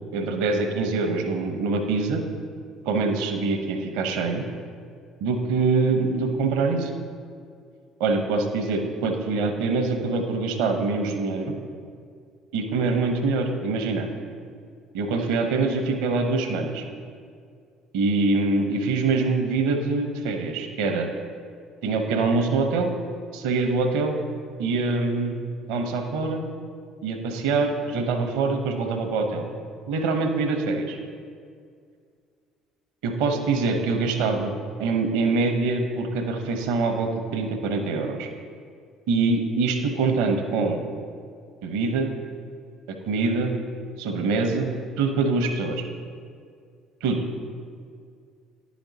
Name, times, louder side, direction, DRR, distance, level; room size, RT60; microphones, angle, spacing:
voice 1, 0.1-2.2 2.8-4.4 5.2-6.9 8.0-11.6 12.5-14.1 14.9-16.8 17.9-21.1 21.8-22.9 23.3-24.2 24.6-26.4 27.0-29.5 29.9-31.0 33.0-34.5 34.8-38.3 39.1-40.8 41.6-42.1 42.9-43.5 44.0-44.7 45.0-45.8 47.0-47.2, right 3 dB, 70° right, 5 dB, 0.8 m, -24 dB
10.5 x 5.1 x 4.1 m, 2.2 s
hypercardioid pair, 60°, 0 cm